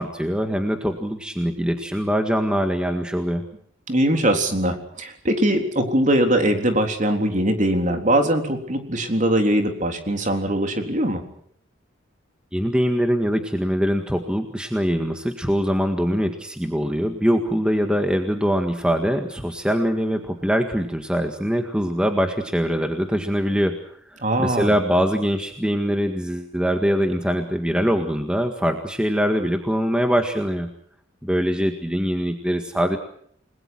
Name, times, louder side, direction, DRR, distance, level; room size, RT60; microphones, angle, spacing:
voice 1, 0.0-3.5 12.5-23.8 24.4-30.7 31.2-33.0, equal, 5° right, 5 dB, 1.8 m, -23 dB
voice 2, 3.9-11.2 24.2-24.8, right 1 dB, 40° right, 5 dB, 3.7 m, -21 dB
29.5 x 21.0 x 6.2 m, 0.63 s
head